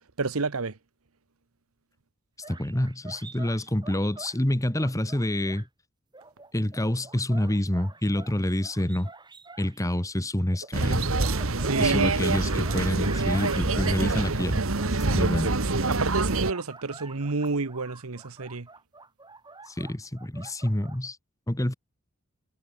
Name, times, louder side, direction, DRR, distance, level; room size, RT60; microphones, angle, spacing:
voice 1, 0.2-0.8 10.8-10.9 11.6-12.2 15.0-15.4 15.7-18.7, right 4 dB, 85° right, 1.1 m, -30 dB
sound 1, 2.4-4.4 4.8-5.7 6.1-9.8 10.5-14.4 14.7-15.9 16.4-21.1, right 3 dB, 20° right, 6.1 m, -46 dB
voice 2, 2.5-5.7 6.5-9.1 9.6-11.1 11.8-14.6 14.9-15.5 19.7-21.2 21.5-21.7, left 1 dB, 15° left, 1.3 m, -27 dB
sound 2, 10.7-16.5, right 3 dB, 70° right, 1.7 m, -25 dB
head